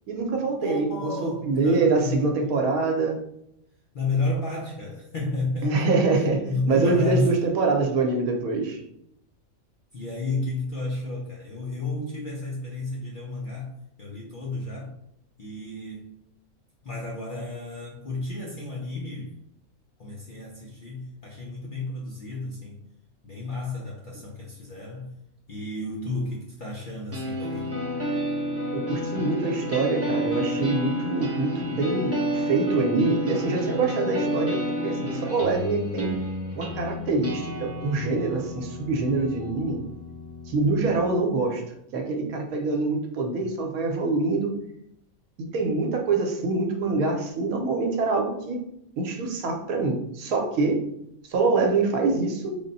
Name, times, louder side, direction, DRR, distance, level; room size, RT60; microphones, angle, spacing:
voice 1, 0.1-0.9 1.2-3.2 5.6-8.8 28.7-36.1 36.5-39.8 40.5-41.6 41.9-44.6 45.5-48.6 49.0-50.9 51.3-52.6, right 3 dB, 75° right, 2 dB, 1.1 m, -25 dB
voice 2, 0.6-2.3 3.9-5.8 6.5-7.4 9.9-15.0 15.4-16.2 16.8-19.4 20.0-22.8 23.2-25.1 25.5-27.8 38.5-38.7, left 2 dB, 60° left, -3 dB, 0.5 m, -32 dB
sound 1, 27.1-41.1, left 1 dB, 15° right, 0.5 m, -30 dB
3.5 x 2.1 x 3.9 m, 0.76 s
omnidirectional pair, 1.5 m